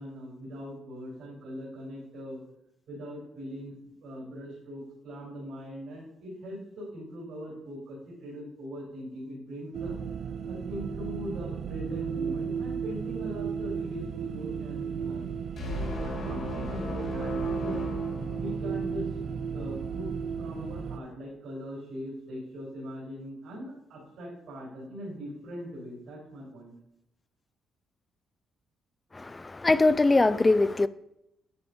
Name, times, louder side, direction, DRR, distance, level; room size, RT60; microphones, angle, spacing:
voice 1, 0.0-2.4 2.9-9.9 10.5-15.3 15.8-17.8 18.3-19.1 19.5-20.1 20.4-26.7, equal, 80° right, 3.2 m, -41 dB
sound 1, 9.7-21.0, right 6 dB, 60° right, 0.4 m, -34 dB
sound 2, 15.6-19.0, left 2 dB, 65° left, 2.2 m, -36 dB
voice 2, 29.1-30.9, left 2 dB, 20° left, 0.3 m, -22 dB
9.5 x 7.7 x 2.6 m
cardioid pair, 90°, 0 cm